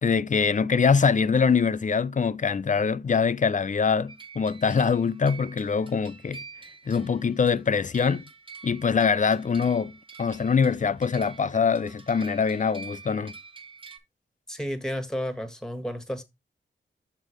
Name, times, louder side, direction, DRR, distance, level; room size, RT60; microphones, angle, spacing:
voice 1, 0.0-6.4 6.9-8.2 8.6-9.9 10.2-13.3, left 5 dB, 40° left, 0.4 m, -23 dB
sound 1, 4.1-14.0, right 4 dB, 25° right, 1.2 m, -47 dB
voice 2, 14.5-16.2, equal, 5° left, 1.5 m, -32 dB
6.3 x 3.8 x 5.0 m
cardioid pair, 50°, 20 cm